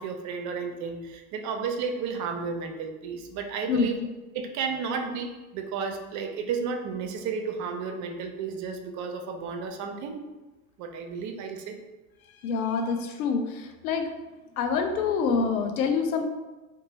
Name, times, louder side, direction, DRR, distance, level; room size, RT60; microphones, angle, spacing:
voice 1, 0.0-4.0 4.3-10.2 10.8-11.8, right 5 dB, 45° right, 5 dB, 0.6 m, -32 dB
voice 2, 12.4-14.1 14.6-16.2, left 5 dB, 80° left, 5 dB, 0.6 m, -26 dB
3.0 x 2.2 x 4.0 m, 1.1 s
hypercardioid pair, 85°, 43 cm